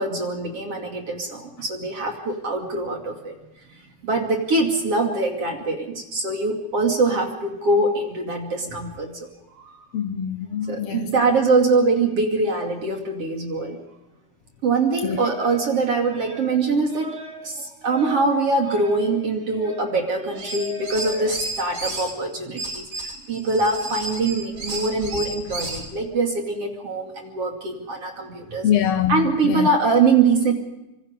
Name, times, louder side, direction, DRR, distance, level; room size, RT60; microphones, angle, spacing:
voice 1, 0.0-3.3 4.0-9.1 9.5-9.8 10.7-13.8 14.6-22.9 23.3-28.7 29.1-30.5, right 3 dB, 50° right, 3.4 m, -23 dB
voice 2, 9.9-11.1 15.0-15.2 28.6-29.7, left 10 dB, 65° left, 1.7 m, -24 dB
sound 1, 20.3-22.1 22.6-25.9, right 2 dB, 30° right, 4.4 m, -32 dB
26.0 x 25.5 x 5.3 m
omnidirectional pair, 3.6 m